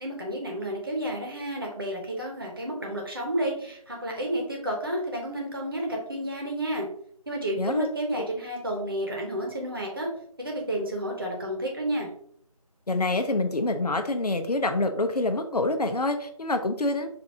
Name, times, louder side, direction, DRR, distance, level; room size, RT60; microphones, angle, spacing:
voice 1, 0.0-6.9 7.3-10.1 10.4-12.1, right 1 dB, 35° right, 0 dB, 1.0 m, -31 dB
voice 2, 12.9-17.1, left 2 dB, 80° left, 7 dB, 0.7 m, -26 dB
4.9 x 2.6 x 2.6 m, 0.63 s
figure-of-eight pair, 175°, 20 cm